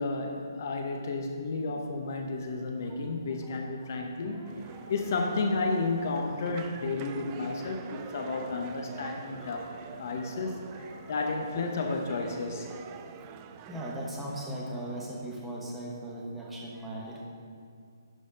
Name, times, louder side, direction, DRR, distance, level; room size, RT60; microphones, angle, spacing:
voice 1, 0.0-4.5 4.9-9.7 10.0-10.6 11.1-12.7, left 3 dB, 45° left, 3 dB, 0.8 m, -32 dB
voice 2, 2.8-4.9 7.5-7.9 8.5-11.3 12.2-12.4 12.8-13.4 13.7-17.2, right 1 dB, 5° right, -3 dB, 1.0 m, -42 dB
sound 1, 4.4-15.7, right 7 dB, 25° right, 0.3 m, -47 dB
11.0 x 4.1 x 5.1 m, 2.2 s
figure-of-eight pair, 140°, 2 cm